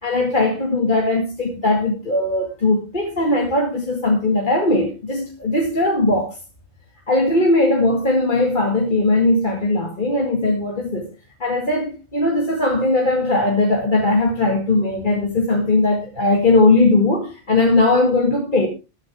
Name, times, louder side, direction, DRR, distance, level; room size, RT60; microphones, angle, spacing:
voice 1, 0.0-6.4 7.1-11.1 11.4-18.7, left 2 dB, 35° left, 2.0 m, -19 dB
13.5 x 12.0 x 3.5 m
omnidirectional pair, 1.4 m